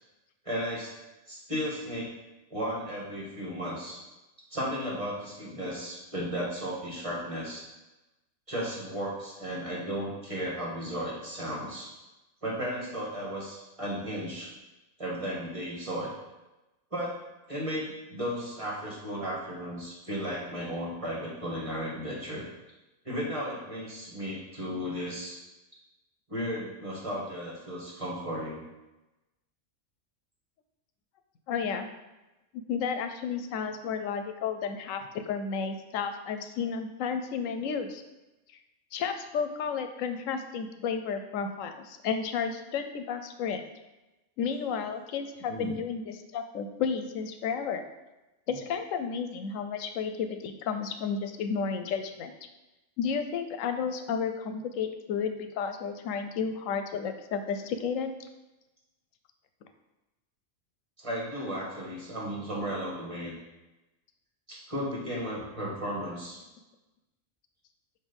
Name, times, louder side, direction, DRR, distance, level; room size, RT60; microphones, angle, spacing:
voice 1, 0.4-0.9 1.3-2.1 2.5-4.0 4.5-7.7 8.5-11.9 12.4-14.5 15.0-16.1 16.9-17.2 17.5-22.4 23.0-25.4 26.3-28.6 45.5-45.7 61.0-63.3 64.5-66.4, equal, 25° right, -5 dB, 1.6 m, -34 dB
voice 2, 31.5-31.9 32.5-38.0 38.9-43.6 44.4-47.8 48.5-52.3 53.0-58.1, left 6 dB, 85° left, 8 dB, 1.0 m, -32 dB
6.6 x 2.9 x 5.2 m, 1.0 s
omnidirectional pair, 1.3 m